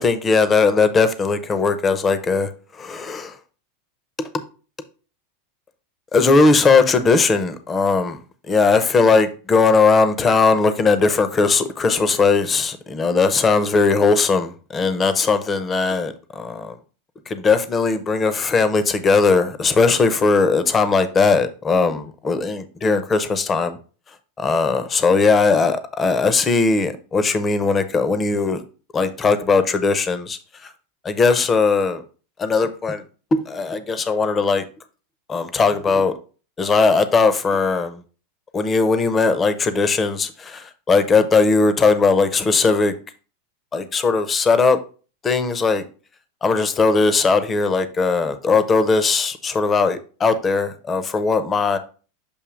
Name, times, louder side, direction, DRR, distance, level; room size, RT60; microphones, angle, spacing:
voice 1, 0.0-3.4 4.2-4.3 6.1-8.2 8.5-16.8 17.3-23.8 24.4-28.6 28.9-30.7 31.0-32.0 32.4-33.0 33.3-34.6 35.3-36.1 36.6-38.0 38.5-42.9 43.7-44.8 45.2-45.8 46.4-51.8, left 4 dB, 20° left, 0.6 m, -19 dB
7.0 x 2.7 x 5.0 m
supercardioid pair, 135°, 0 cm